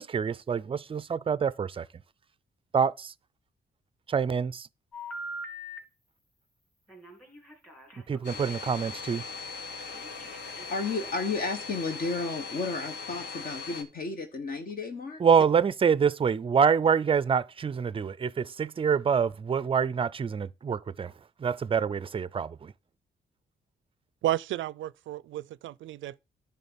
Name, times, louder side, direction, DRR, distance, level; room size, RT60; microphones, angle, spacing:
voice 1, 0.0-1.9 2.7-3.1 4.1-4.7 8.1-9.2 15.2-21.1 21.4-22.7, right 6 dB, 30° right, 0.4 m, -26 dB
Telephone, 4.9-5.8 6.9-9.0 9.9-11.3, equal, 10° left, 3.3 m, -43 dB
Domestic sounds home sounds, 8.2-13.8, left 4 dB, 65° left, 2.0 m, -40 dB
voice 2, 10.5-15.2, left 3 dB, 50° left, 1.3 m, -33 dB
voice 3, 24.2-26.2, right 14 dB, 90° right, 0.4 m, -32 dB
10.5 x 3.7 x 7.2 m
cardioid pair, 115°, 19 cm